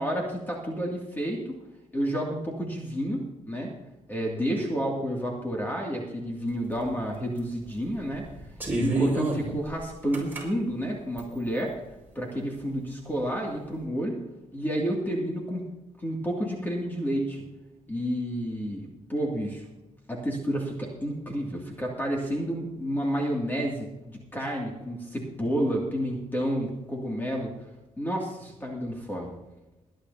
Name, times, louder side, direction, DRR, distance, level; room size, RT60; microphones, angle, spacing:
voice 1, 0.0-1.6 1.9-3.7 4.1-8.3 8.7-11.7 12.1-14.2 14.5-15.6 16.0-17.4 17.9-19.7 20.1-27.5 28.0-29.3, equal, 15° left, -2 dB, 2.4 m, -30 dB
sound 1, 6.8-6.9 7.4-7.6 8.1-10.4 11.2-11.7, right 3 dB, 15° right, 5.1 m, -29 dB
22.0 x 10.0 x 2.8 m, 1.0 s
cardioid pair, 115°, 12 cm